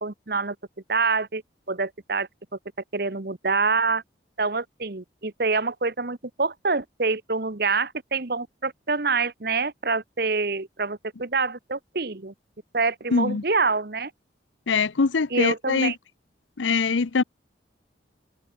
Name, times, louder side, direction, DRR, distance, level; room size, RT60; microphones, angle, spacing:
voice 1, 0.0-0.5 0.9-1.4 1.7-2.3 2.9-4.0 4.4-12.3 12.7-14.1 15.3-16.0, right 4 dB, 55° right, 1.2 m, -26 dB
voice 2, 13.1-13.4 14.7-15.9 16.6-17.2, left 4 dB, 85° left, 0.7 m, -23 dB
head